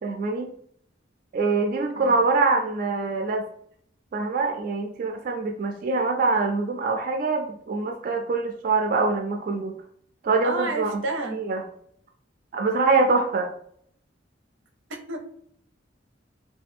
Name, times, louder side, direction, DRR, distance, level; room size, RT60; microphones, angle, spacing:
voice 1, 0.0-0.5 1.3-3.5 4.1-9.8 10.2-11.0 11.4-11.6 12.5-13.5, right 3 dB, 50° right, 3 dB, 0.3 m, -24 dB
voice 2, 10.4-11.4 15.1-15.2, right 2 dB, 85° right, 3 dB, 0.6 m, -30 dB
3.1 x 2.2 x 3.4 m, 0.65 s
head